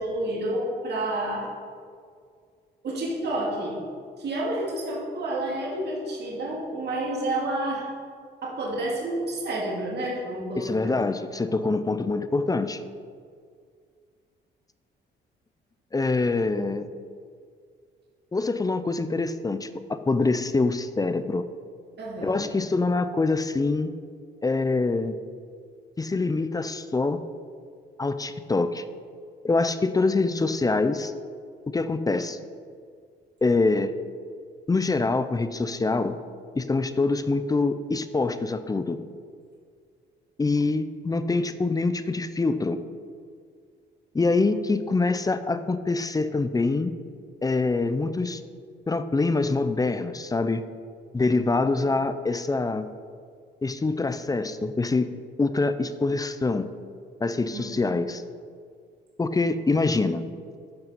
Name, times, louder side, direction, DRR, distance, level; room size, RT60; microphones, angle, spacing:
voice 1, 0.0-1.5 2.8-3.8 4.2-7.9 8.4-11.0 22.0-22.4 57.5-58.1, right 1 dB, 55° right, -4 dB, 2.3 m, -30 dB
voice 2, 10.6-12.8 15.9-16.9 18.3-21.5 22.2-23.9 24.4-25.1 26.0-27.2 28.0-28.8 29.4-31.1 31.7-32.4 33.4-33.9 34.7-36.2 36.5-39.0 40.4-42.8 44.1-46.9 47.4-48.4 48.9-50.6 51.1-52.9 53.6-56.7 57.2-58.2 59.2-60.2, left 3 dB, 20° left, 12 dB, 0.5 m, -25 dB
9.1 x 5.6 x 5.6 m, 2.1 s
cardioid pair, 90°, 20 cm